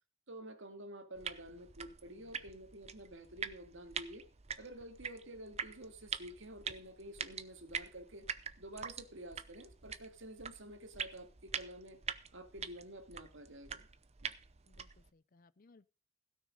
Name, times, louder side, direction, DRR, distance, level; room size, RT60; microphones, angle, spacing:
voice 1, 0.3-4.3 4.6-8.3 8.6-12.0 12.3-13.9 14.2-14.3, right 1 dB, 55° right, 2.1 m, -50 dB
sound 1, 1.1-15.1, right 7 dB, 30° right, 0.6 m, -45 dB
voice 2, 14.7-15.9, left 3 dB, 40° left, 0.5 m, -65 dB
16.5 x 6.4 x 6.4 m
head